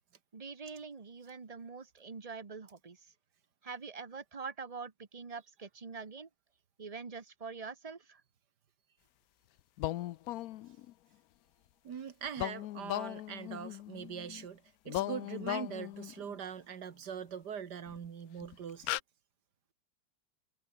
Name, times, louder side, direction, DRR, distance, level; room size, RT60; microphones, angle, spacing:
voice 1, 0.3-3.0 3.6-6.3 6.8-8.2, right 5 dB, 25° right, 1.0 m, -44 dB
sound 1, 9.8-10.9 12.4-14.5 14.9-16.3 17.9-18.0 18.4-18.5 18.8-19.0, left 15 dB, 75° left, 0.8 m, -38 dB
voice 2, 11.8-19.0, right 7 dB, 65° right, 2.1 m, -42 dB
omnidirectional pair, 2.0 m